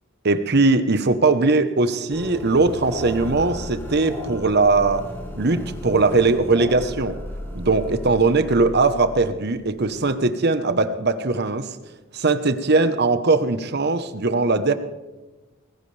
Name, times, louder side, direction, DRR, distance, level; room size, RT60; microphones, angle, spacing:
voice 1, 0.2-7.2 7.5-11.7 12.1-14.7, right 3 dB, 55° right, 10 dB, 1.1 m, -20 dB
sound 1, 2.1-10.0, equal, 10° left, 2.7 m, -34 dB
20.0 x 16.0 x 3.4 m, 1.2 s
head